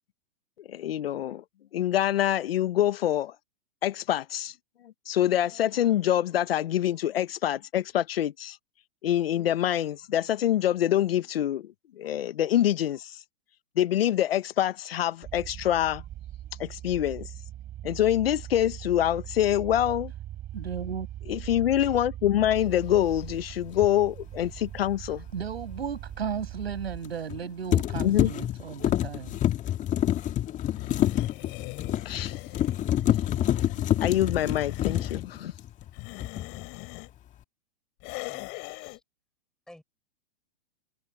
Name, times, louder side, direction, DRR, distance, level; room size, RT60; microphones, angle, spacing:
voice 1, 0.6-1.4 1.7-3.3 3.8-4.5 5.1-8.6 9.0-13.2 13.7-16.0 16.6-17.3 17.8-20.1 21.3-25.2 28.0-28.3 31.2-31.3 32.0-32.4 34.0-35.5, left 12 dB, 70° left, 1.5 m, -25 dB
sound 1, 15.2-27.0, right 13 dB, 30° right, 7.5 m, -40 dB
voice 2, 20.5-21.1 25.3-29.4, right 7 dB, 85° right, 6.5 m, -35 dB
sound 2, 23.7-23.9 27.0-27.4 27.7-35.9 36.2-36.7, left 12 dB, 25° left, 2.0 m, -27 dB
sound 3, 30.7-35.2 35.8-37.1 38.0-39.0, left 28 dB, 40° left, 4.6 m, -40 dB
voice 3, 38.3-39.0 39.7-39.8, left 1 dB, ahead, 4.9 m, -53 dB
hypercardioid pair, 125°, 31 cm